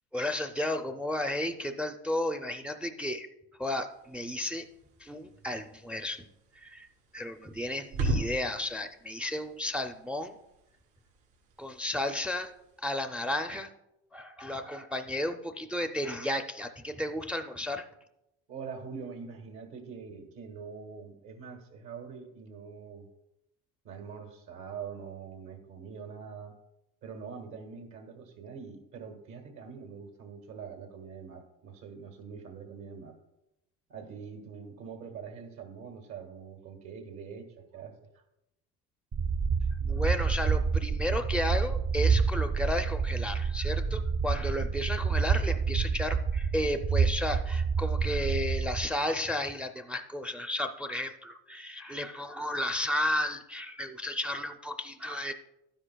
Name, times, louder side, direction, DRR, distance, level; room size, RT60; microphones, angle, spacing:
voice 1, 0.1-3.3 3.6-4.7 5.0-6.3 6.6-6.9 7.1-10.3 11.6-12.5 12.8-13.7 14.1-17.8 39.8-55.3, left 1 dB, 5° right, 7 dB, 0.4 m, -33 dB
sound 1, 3.9-12.8, right 2 dB, 85° right, 2.8 m, -40 dB
voice 2, 18.5-23.1 23.8-26.5 27.0-33.2 33.9-38.2, right 6 dB, 70° right, 4 dB, 1.7 m, -44 dB
sound 2, 39.1-48.9, right 5 dB, 40° right, 0.6 m, -28 dB
12.0 x 10.0 x 2.2 m, 0.88 s
cardioid pair, 120°, 29 cm